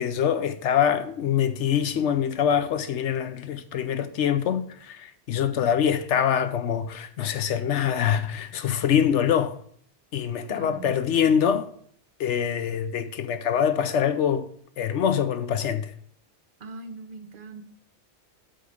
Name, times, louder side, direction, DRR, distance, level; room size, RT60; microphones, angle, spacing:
voice 1, 0.0-9.6 10.1-11.7 12.2-14.5 14.8-15.9, left 8 dB, 85° left, 1.0 m, -24 dB
voice 2, 10.5-11.0 16.6-17.6, right 3 dB, 55° right, 0.8 m, -40 dB
8.4 x 3.9 x 6.3 m
omnidirectional pair, 1.2 m